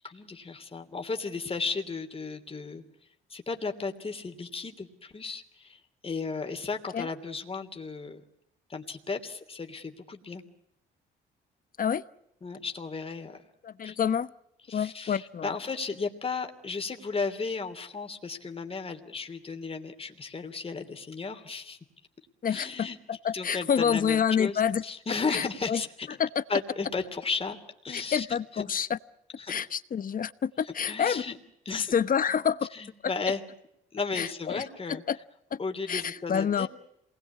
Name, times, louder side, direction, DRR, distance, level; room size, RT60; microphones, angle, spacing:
voice 1, 0.0-2.8 3.3-8.2 8.7-10.4 12.4-13.4 13.8-14.0 14.7-21.8 22.5-23.0 23.3-26.1 26.5-27.6 27.8-28.6 29.4-29.5 30.6-31.3 31.6-31.9 32.7-33.4 33.9-35.0 35.6-36.7, left 4 dB, 30° left, 3.1 m, -34 dB
voice 2, 13.6-14.3 14.7-15.5 22.4-24.8 25.3-25.8 26.2-26.4 27.9-29.0 29.5-31.2 31.7-32.7 34.1-34.6 34.9-35.2 35.5-35.6 35.9-36.7, left 7 dB, 45° left, 1.0 m, -28 dB
27.5 x 20.5 x 8.5 m
cardioid pair, 90°, 20 cm